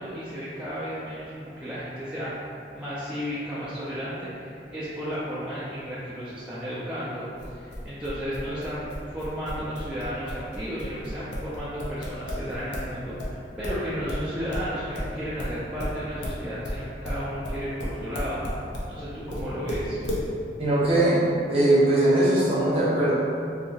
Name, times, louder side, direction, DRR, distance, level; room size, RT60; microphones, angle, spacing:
voice 1, 0.0-20.0, equal, 5° right, -11 dB, 0.4 m, -33 dB
sound 1, 7.4-12.9 13.2-18.9 19.3-20.3, equal, 80° left, 0.6 m, -33 dB
voice 2, 20.6-21.2 21.5-23.1, right 1 dB, 35° right, -8 dB, 0.8 m, -20 dB
3.0 x 2.7 x 2.8 m, 2.4 s
head